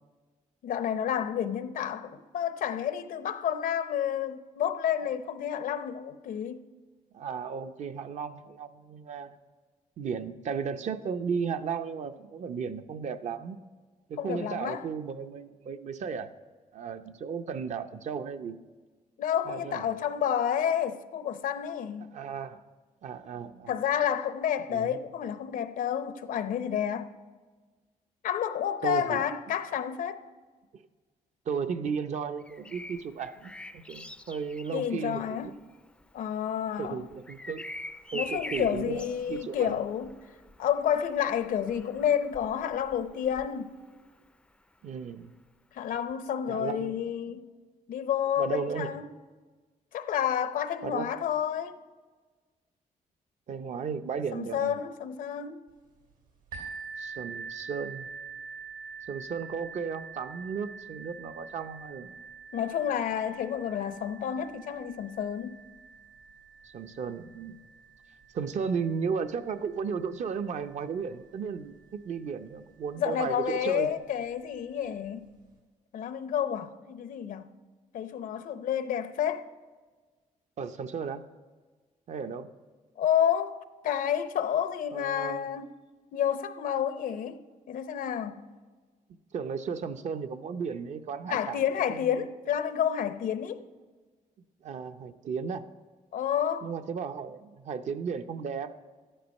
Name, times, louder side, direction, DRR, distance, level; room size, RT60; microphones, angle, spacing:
voice 1, 0.6-6.6 14.2-14.8 19.2-22.1 23.7-27.1 28.2-30.2 34.7-35.5 36.1-37.0 38.1-40.1 40.6-43.7 45.7-47.4 47.9-49.1 49.9-51.8 54.3-55.6 62.5-65.6 73.0-75.3 75.9-77.5 77.9-79.4 83.0-85.7 86.1-87.4 87.7-88.4 91.3-93.6 96.1-96.7, left 9 dB, 80° left, 0.7 m, -30 dB
voice 2, 7.1-9.3 10.0-13.6 14.1-16.3 16.7-18.6 19.5-19.9 22.1-22.6 23.0-23.7 24.7-25.0 28.8-29.2 30.7-30.8 31.5-35.4 36.8-37.6 38.1-39.8 44.8-45.3 46.5-47.0 48.4-48.9 50.8-51.1 53.5-54.8 57.0-58.1 59.1-62.2 66.6-67.6 68.3-73.9 80.6-81.2 82.1-82.5 84.9-85.5 89.3-91.6 91.9-92.1 94.6-95.6 96.6-98.7, right 6 dB, 60° right, 0.7 m, -35 dB
Bird vocalization bird call bird song, 32.4-44.2 45.9-46.1, left 2 dB, 5° left, 0.4 m, -45 dB
sound 1, 56.5-72.1 72.8-72.9 73.5-73.6, right 5 dB, 80° right, 3.3 m, -46 dB
13.0 x 10.0 x 5.3 m
cardioid pair, 125°, 14 cm